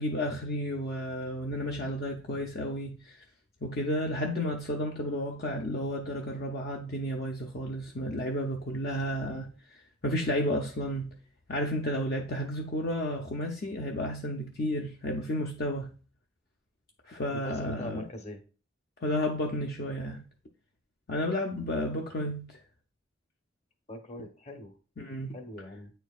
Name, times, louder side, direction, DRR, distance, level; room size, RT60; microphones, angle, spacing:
voice 1, 0.0-3.2 3.6-11.1 11.5-15.9 17.1-18.0 19.0-20.2 21.1-22.6 25.0-25.4, left 1 dB, 55° left, 0.6 m, -32 dB
voice 2, 17.3-18.4 23.9-24.7 25.3-25.9, left 1 dB, 35° left, 1.0 m, -41 dB
9.0 x 4.5 x 2.3 m
head